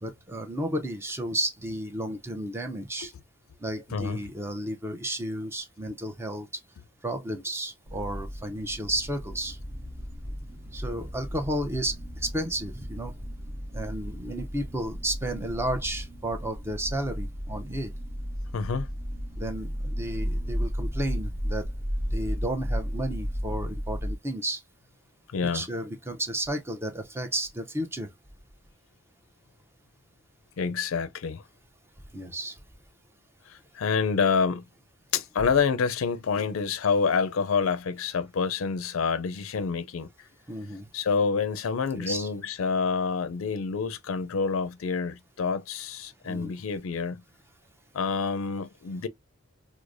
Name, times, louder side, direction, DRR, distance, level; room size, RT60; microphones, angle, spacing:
voice 1, 0.0-3.1 3.6-6.5 7.0-9.6 10.7-13.1 13.7-17.9 19.4-21.7 22.1-24.6 25.4-28.1 32.1-32.6 40.5-40.9 42.0-42.3 46.2-46.5, right 1 dB, 10° right, 0.5 m, -32 dB
voice 2, 3.9-4.2 18.5-18.9 25.3-25.7 30.6-31.4 33.5-34.6 35.1-40.1 40.9-47.2 47.9-49.1, left 5 dB, 90° left, 0.4 m, -27 dB
sound 1, 7.9-24.2, equal, 45° right, 0.8 m, -34 dB
4.7 x 2.0 x 2.5 m
head